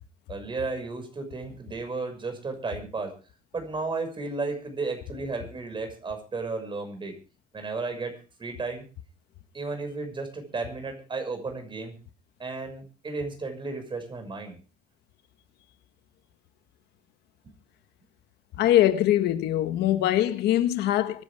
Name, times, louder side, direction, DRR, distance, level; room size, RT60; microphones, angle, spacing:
voice 1, 0.3-3.2 3.5-7.2 7.5-8.8 9.5-12.0 12.4-14.6 17.4-17.5, right 3 dB, 30° right, 6.3 m, -33 dB
voice 2, 18.6-21.2, left 13 dB, 75° left, 1.5 m, -22 dB
24.5 x 11.5 x 3.6 m
cardioid pair, 110°, 17 cm